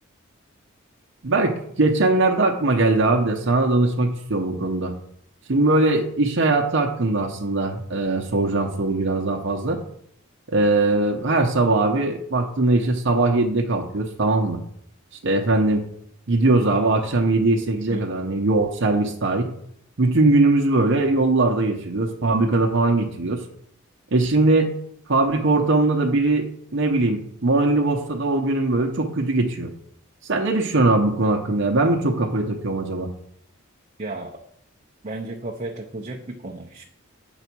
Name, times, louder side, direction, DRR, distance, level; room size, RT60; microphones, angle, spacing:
voice 1, 1.2-4.9 5.5-9.8 10.5-14.6 15.2-15.8 16.3-19.5 20.0-23.4 24.1-24.7 25.1-26.5 26.7-29.7 30.2-33.1, right 2 dB, 60° right, 2 dB, 0.8 m, -20 dB
voice 2, 34.0-34.3 35.0-36.8, right 2 dB, 35° right, 0 dB, 0.6 m, -33 dB
8.1 x 4.0 x 6.0 m, 0.70 s
head